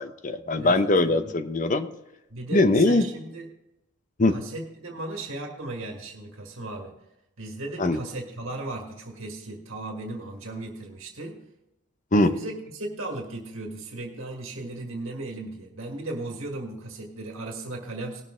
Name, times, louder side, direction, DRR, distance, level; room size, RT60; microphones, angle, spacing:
voice 1, 0.0-1.9 2.5-3.0 4.2-4.4 7.8-8.0 12.1-12.3, left 2 dB, 35° left, 9 dB, 0.7 m, -21 dB
voice 2, 0.6-1.2 2.3-3.5 4.3-6.9 7.4-11.4 12.2-18.2, right 2 dB, 65° right, 1 dB, 1.8 m, -36 dB
19.0 x 6.4 x 3.7 m, 0.89 s
head